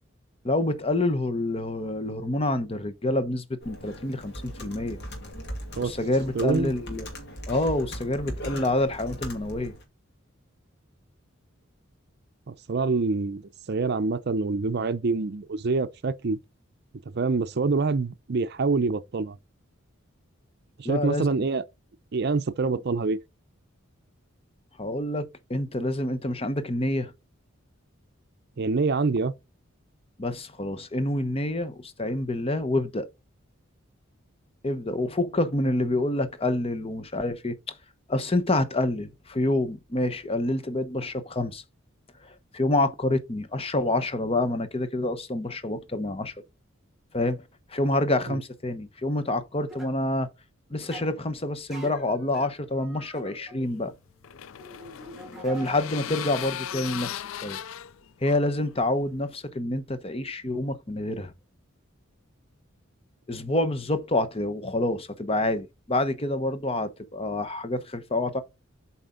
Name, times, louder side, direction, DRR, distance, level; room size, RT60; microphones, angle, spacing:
voice 1, 0.4-5.0 5.8-7.1 7.5-9.7 20.8-21.3 24.8-27.1 30.2-33.1 34.6-37.8 38.1-41.6 42.2-46.3 47.1-47.4 47.7-50.3 50.7-53.9 55.4-57.6 58.2-61.3 63.3-68.4, left 2 dB, 30° left, 0.8 m, -27 dB
Computer keyboard, 3.6-9.8, equal, 55° left, 2.4 m, -39 dB
voice 2, 6.3-6.7 12.5-16.4 17.1-19.4 20.8-21.6 22.1-23.2 28.6-29.3 48.3-48.4, right 4 dB, 50° right, 0.5 m, -26 dB
sound 1, 49.7-49.9 50.8-51.1 51.7-56.3 56.5-56.9 59.3-59.4, right 1 dB, ahead, 2.5 m, -46 dB
sound 2, 53.7-59.2, left 10 dB, 75° left, 0.4 m, -38 dB
8.0 x 4.3 x 3.8 m
head